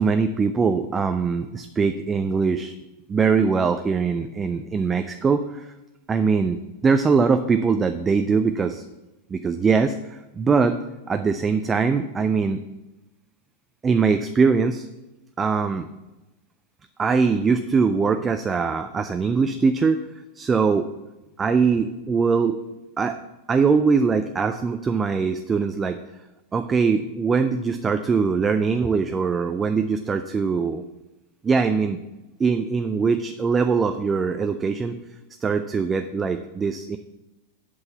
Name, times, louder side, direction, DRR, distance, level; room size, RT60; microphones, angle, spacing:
voice 1, 0.0-2.8 3.1-5.7 6.1-8.8 9.3-10.8 11.1-12.6 13.8-14.9 15.4-15.9 17.0-20.0 20.4-20.9 21.4-22.6 23.0-23.2 23.5-26.0 26.5-30.8 31.4-32.0 32.4-35.0 35.4-37.0, right 5 dB, 20° right, 8 dB, 0.4 m, -22 dB
8.0 x 5.5 x 6.8 m, 1.0 s
figure-of-eight pair, 90°, 0 cm